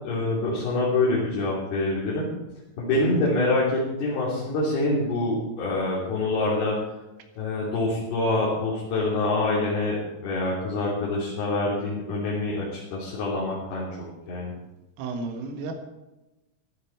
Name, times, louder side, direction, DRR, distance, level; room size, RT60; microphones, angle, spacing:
voice 1, 0.0-2.3 2.8-6.8 7.4-13.9 14.3-14.5, left 2 dB, 55° left, -6 dB, 5.0 m, -26 dB
voice 2, 15.0-15.7, right 3 dB, 85° right, 4 dB, 4.2 m, -32 dB
15.0 x 13.0 x 4.7 m, 1.0 s
omnidirectional pair, 5.7 m